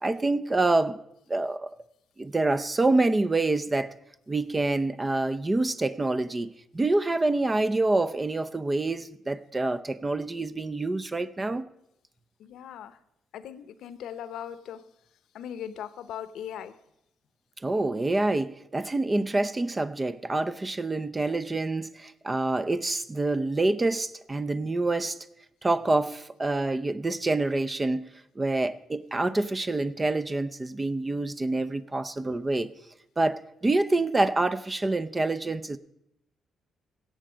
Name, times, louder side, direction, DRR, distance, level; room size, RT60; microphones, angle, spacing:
voice 1, 0.0-1.0 1.3-1.7 2.2-3.9 4.3-11.7 17.6-25.2 25.6-32.7 33.2-35.8, right 2 dB, 20° right, 0.6 m, -27 dB
voice 2, 12.4-13.0 13.3-14.8 15.3-16.7, left 9 dB, 80° left, 0.8 m, -39 dB
17.0 x 7.6 x 5.0 m
cardioid pair, 90°, 0 cm